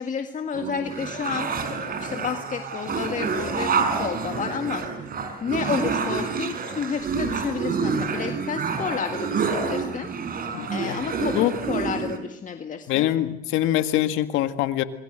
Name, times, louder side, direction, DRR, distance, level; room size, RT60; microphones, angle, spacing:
voice 1, 0.0-1.5 2.0-4.9 5.4-10.1 10.7-13.1, left 6 dB, 40° left, 7 dB, 1.8 m, -31 dB
sound 1, 0.5-12.2, right 5 dB, 45° right, 4.8 m, -28 dB
voice 2, 10.5-11.0 11.3-11.6 12.9-14.8, left 13 dB, 75° left, 10 dB, 1.9 m, -24 dB
27.0 x 21.5 x 7.9 m, 0.83 s
supercardioid pair, 85°, 20 cm